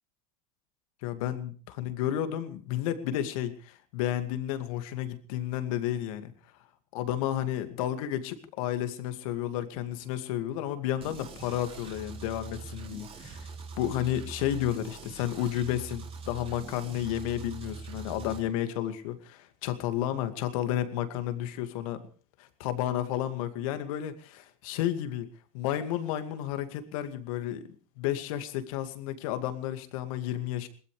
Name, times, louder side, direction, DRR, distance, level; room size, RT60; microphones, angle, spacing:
voice 1, 1.0-6.3 6.9-13.5 13.8-22.0 22.4-25.3 25.5-27.6 28.0-30.7, left 12 dB, 65° left, 9 dB, 2.3 m, -32 dB
sound 1, 11.0-18.4, right 4 dB, 30° right, 5.1 m, -43 dB
22.0 x 19.5 x 3.3 m, 0.41 s
hypercardioid pair, 85°, 19 cm